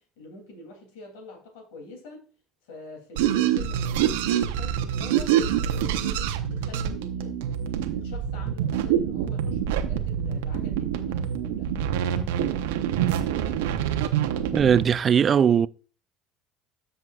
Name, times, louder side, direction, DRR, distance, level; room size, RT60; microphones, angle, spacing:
voice 1, 0.0-2.3 2.6-11.7, left 3 dB, 80° left, 2.9 m, -45 dB
sound 1, 3.2-14.9, right 10 dB, 85° right, 0.8 m, -26 dB
voice 2, 14.5-15.7, right 7 dB, 40° right, 0.4 m, -19 dB
13.5 x 5.7 x 2.4 m
hypercardioid pair, 75°, 0 cm